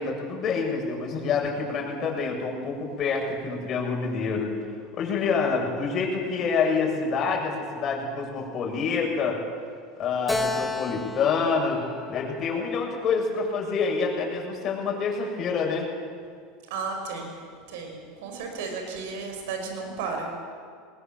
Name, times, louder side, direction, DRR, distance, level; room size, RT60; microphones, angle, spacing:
voice 1, 0.0-4.5 4.9-9.4 10.0-15.9, left 5 dB, 40° left, 0 dB, 6.7 m, -27 dB
voice 2, 5.2-5.6 16.7-20.3, right 4 dB, 70° right, 3 dB, 5.6 m, -34 dB
Keyboard (musical), 10.3-13.7, left 2 dB, 5° left, 2.2 m, -33 dB
21.0 x 19.5 x 7.8 m, 2.1 s
hypercardioid pair, 85°, 0 cm